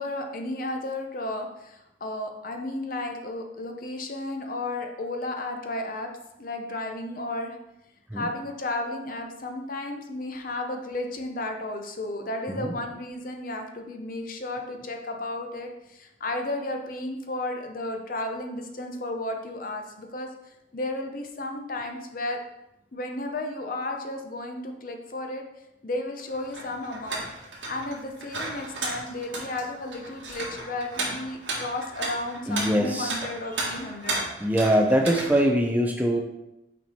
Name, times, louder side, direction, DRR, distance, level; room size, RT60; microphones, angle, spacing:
voice 1, 0.0-6.1 6.4-7.6 8.1-20.3 20.7-22.4 22.9-25.4 25.8-27.2 27.7-34.5, left 2 dB, 45° left, 4 dB, 0.7 m, -33 dB
sound 1, 26.3-35.4, right 2 dB, 70° right, 1.7 m, -34 dB
voice 2, 32.5-33.1 34.4-36.2, equal, 10° right, 2 dB, 0.4 m, -23 dB
6.1 x 4.4 x 4.2 m, 0.90 s
head